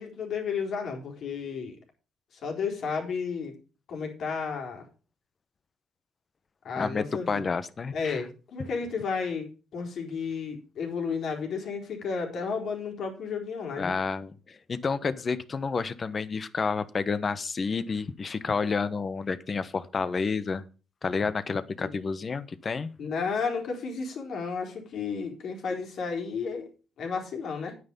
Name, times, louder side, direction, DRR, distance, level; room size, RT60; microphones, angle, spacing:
voice 1, 0.0-1.8 2.3-3.5 3.9-4.9 6.6-7.4 7.9-13.9 21.8-21.9 23.0-26.7 27.0-27.7, left 5 dB, 65° left, 2 dB, 4.0 m, -32 dB
voice 2, 6.8-8.2 13.8-20.6 21.0-22.9, left 5 dB, 40° left, 14 dB, 1.1 m, -30 dB
9.5 x 9.4 x 5.3 m, 0.34 s
cardioid pair, 90°, 0 cm